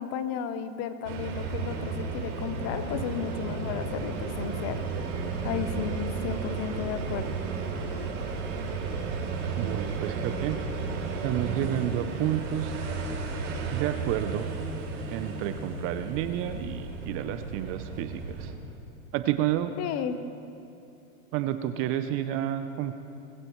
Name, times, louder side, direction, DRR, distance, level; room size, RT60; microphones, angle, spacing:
voice 1, 0.0-4.8 5.4-7.3 19.8-20.2, left 8 dB, 35° left, 10 dB, 0.9 m, -33 dB
sound 1, 1.0-18.5, right 4 dB, 60° right, 3.3 m, -33 dB
voice 2, 9.6-10.6 11.2-12.7 13.7-14.5 15.1-18.5 19.1-19.7 21.3-22.9, right 12 dB, 30° right, 10 dB, 0.5 m, -30 dB
20.5 x 15.5 x 3.1 m, 2.7 s
hypercardioid pair, 115°, 43 cm